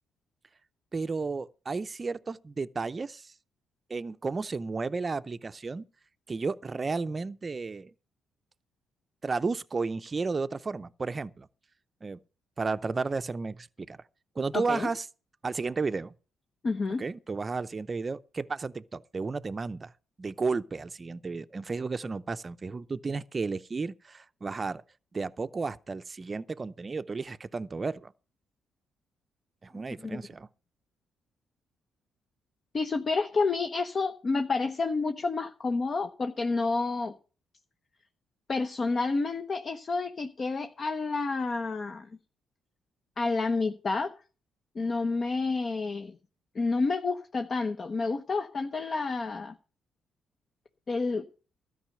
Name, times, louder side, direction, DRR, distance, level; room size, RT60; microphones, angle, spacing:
voice 1, 0.9-3.3 3.9-5.8 6.3-7.9 9.2-11.5 12.0-12.2 12.6-14.0 14.4-15.1 15.4-16.1 17.0-19.9 20.2-24.8 25.1-28.1 29.6-30.5, right 4 dB, 30° right, 0.6 m, -33 dB
voice 2, 14.5-14.9 16.6-17.0 30.0-30.2 32.7-37.1 38.5-42.1 43.2-44.1 44.7-46.1 46.5-49.5 50.9-51.3, left 3 dB, 40° left, 0.9 m, -29 dB
13.0 x 5.5 x 8.9 m
cardioid pair, 90°, 0 cm